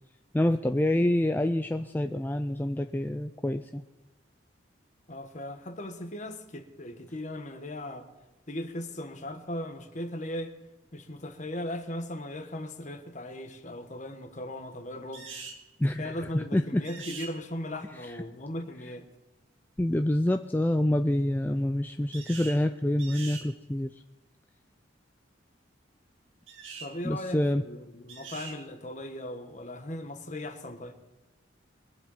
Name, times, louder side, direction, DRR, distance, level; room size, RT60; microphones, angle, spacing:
voice 1, 0.3-3.8 15.8-16.8 17.9-18.2 19.8-23.9 27.0-27.6, left 1 dB, 10° left, 0.3 m, -27 dB
voice 2, 5.1-8.1 8.5-10.5 10.9-15.3 16.0-19.0 26.8-30.9, left 1 dB, 40° left, 1.3 m, -38 dB
sound 1, 15.1-15.6 16.9-17.3 22.1-22.6 23.0-23.5 26.5-26.9 28.1-28.6, right 5 dB, 80° right, 2.2 m, -42 dB
22.5 x 7.7 x 5.6 m
head